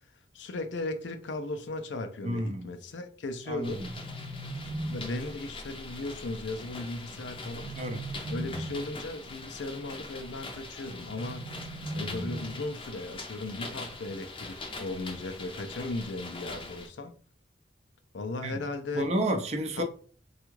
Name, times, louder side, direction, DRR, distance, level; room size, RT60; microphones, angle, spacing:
voice 1, 0.3-3.9 4.8-7.8 8.3-11.6 11.9-17.1 18.1-19.1 19.8-19.9, left 2 dB, 80° left, 0.5 m, -37 dB
voice 2, 2.2-2.7 3.5-3.9 7.8-8.1 18.4-18.6 19.0-19.8, right 1 dB, 35° right, 0.5 m, -30 dB
sound 1, 3.5-5.5 7.2-9.0 10.8-12.8, right 1 dB, 80° right, 0.6 m, -39 dB
sound 2, 3.6-16.9, left 2 dB, 30° left, 0.6 m, -43 dB
3.4 x 2.3 x 3.1 m
head